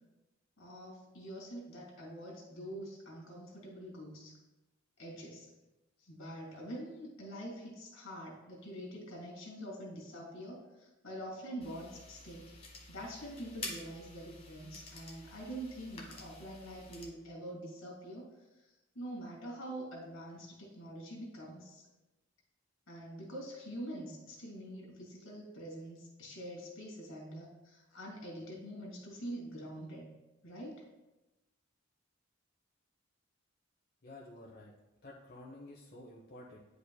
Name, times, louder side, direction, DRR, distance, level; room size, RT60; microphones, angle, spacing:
voice 1, 0.6-4.4 5.0-5.5 6.0-12.5 12.9-18.3 18.6-21.8 22.9-30.1 30.4-30.9, right 1 dB, 85° left, -1 dB, 2.2 m, -45 dB
sound 1, 11.6-17.1, left 2 dB, 30° left, 1.2 m, -49 dB
voice 2, 34.0-34.7 35.0-36.6, left 1 dB, 50° left, -3 dB, 0.8 m, -51 dB
9.6 x 5.1 x 2.2 m, 1.1 s
head